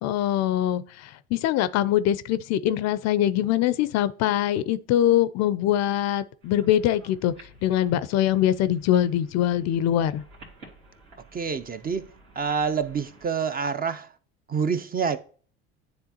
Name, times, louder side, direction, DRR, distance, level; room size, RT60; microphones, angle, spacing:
voice 1, 0.0-10.2, left 11 dB, 55° left, 0.5 m, -23 dB
sound 1, 6.4-13.3, right 2 dB, 85° right, 2.1 m, -52 dB
voice 2, 11.3-12.1 12.4-14.1 14.5-15.2, right 6 dB, 30° right, 0.6 m, -27 dB
9.7 x 3.5 x 2.8 m
hypercardioid pair, 70°, 32 cm